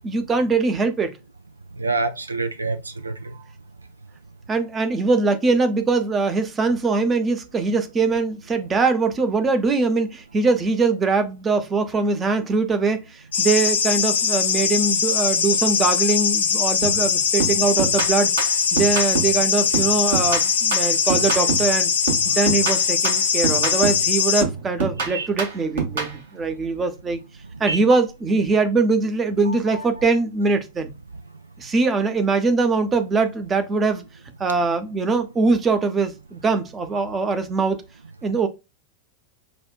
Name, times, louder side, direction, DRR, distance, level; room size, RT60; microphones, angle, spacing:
voice 1, 0.0-1.1 4.5-18.3 18.7-21.9 22.2-27.2 27.6-30.9 31.6-34.0 34.4-37.8 38.2-38.5, right 4 dB, 20° right, 0.7 m, -22 dB
voice 2, 1.8-3.4 22.3-22.4 25.1-25.3 27.7-27.8 29.5-29.8, right 3 dB, 80° right, 0.4 m, -27 dB
sound 1, 13.3-24.4, left 7 dB, 65° left, 0.5 m, -21 dB
sound 2, 16.8-17.1 17.4-19.4 19.7-21.8 22.1-24.1 24.4-26.2, right 5 dB, 60° right, 1.5 m, -27 dB
6.0 x 2.4 x 2.2 m
figure-of-eight pair, 90°, 0 cm